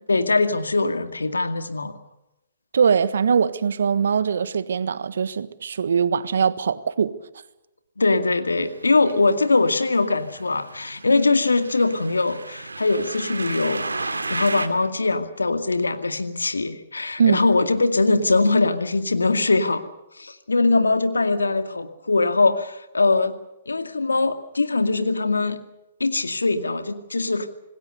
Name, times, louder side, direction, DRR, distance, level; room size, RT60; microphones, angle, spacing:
voice 1, 0.1-2.0 8.0-19.8 20.2-23.4 23.7-25.6 26.0-27.5, left 3 dB, 85° left, 2.2 m, -22 dB
voice 2, 2.7-7.2 17.2-17.4, right 6 dB, 70° right, 1.4 m, -21 dB
sound 1, 8.5-14.7, right 3 dB, 85° right, 2.5 m, -34 dB
27.0 x 20.0 x 6.8 m
figure-of-eight pair, 125°, 0 cm